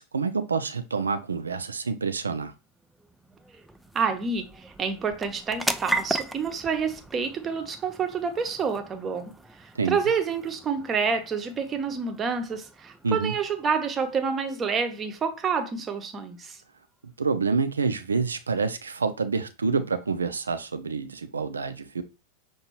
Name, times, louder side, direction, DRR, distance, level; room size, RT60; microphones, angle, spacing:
voice 1, 0.0-2.5 9.8-10.0 13.0-13.3 17.2-22.0, right 4 dB, 75° right, 0.5 m, -27 dB
sound 1, 2.5-17.1, right 2 dB, 5° right, 0.3 m, -38 dB
voice 2, 3.9-4.4 4.8-9.3 9.9-16.6, right 5 dB, 25° right, 0.7 m, -28 dB
5.9 x 2.6 x 2.9 m
figure-of-eight pair, 90°, 0 cm